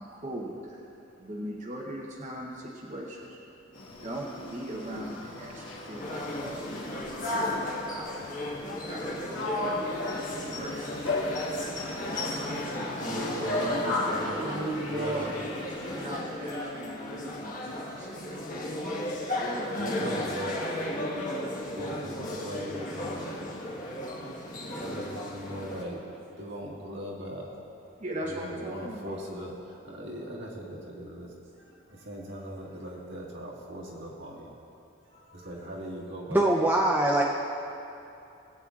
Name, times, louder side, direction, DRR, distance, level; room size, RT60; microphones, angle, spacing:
voice 1, 0.0-13.3 13.8-18.4 18.9-19.1 19.3-19.8 27.9-29.2, right 1 dB, 35° right, -3 dB, 0.9 m, -40 dB
sound 1, 3.7-16.1, left 2 dB, 65° left, 1.4 m, -35 dB
sound 2, 6.0-25.8, left 1 dB, 40° left, 1.5 m, -35 dB
voice 2, 13.0-14.4 14.9-15.3 19.8-20.6 21.8-23.5 24.8-26.1 26.4-27.5 28.3-31.3 31.9-34.6 35.1-36.5, equal, 60° right, -3 dB, 1.7 m, -38 dB
voice 3, 36.3-37.2, right 1 dB, 10° right, -3 dB, 0.5 m, -22 dB
20.0 x 8.8 x 2.5 m, 2.8 s
head